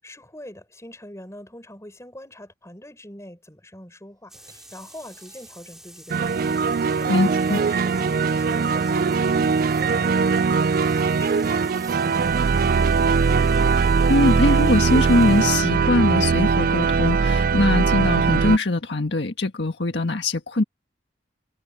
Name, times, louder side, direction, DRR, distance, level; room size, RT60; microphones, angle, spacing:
voice 1, 0.0-13.5, left 1 dB, 15° left, 6.9 m, -43 dB
sound 1, 4.3-15.6, right 1 dB, 5° right, 4.1 m, -47 dB
sound 2, 4.3-5.6 6.2-12.1 13.6-13.8, right 5 dB, 20° right, 7.8 m, -53 dB
sound 3, 6.1-18.6, right 5 dB, 50° right, 0.4 m, -20 dB
voice 2, 7.1-7.6 14.1-20.6, left 2 dB, 70° left, 1.6 m, -21 dB
head